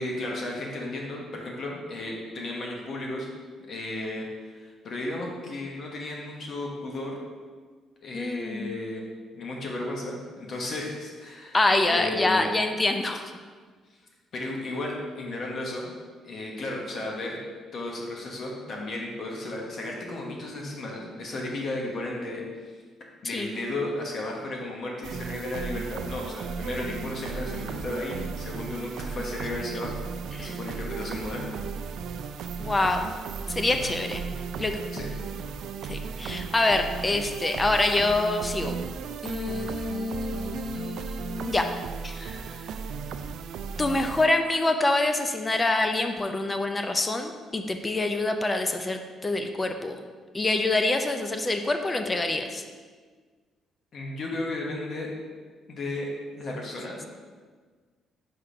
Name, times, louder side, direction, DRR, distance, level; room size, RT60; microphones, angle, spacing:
voice 1, 0.0-3.3 3.7-7.2 8.0-9.0 9.3-11.5 11.8-12.5 14.3-15.9 16.2-17.4 17.7-22.4 23.2-30.1 30.4-31.6 34.9-35.1 53.9-55.1 55.7-57.0, left 2 dB, 55° left, -1 dB, 1.2 m, -34 dB
voice 2, 8.1-8.8 11.5-13.3 23.2-23.5 30.3-30.6 32.6-33.1 33.5-34.2 34.6-34.8 35.9-38.7 39.2-41.6 42.0-42.6 43.8-50.0 50.3-52.6, left 2 dB, 20° left, 6 dB, 0.5 m, -26 dB
sound 1, 25.0-44.3, right 6 dB, 75° right, 0.3 m, -35 dB
4.9 x 4.3 x 4.9 m, 1.5 s
cardioid pair, 95°, 0 cm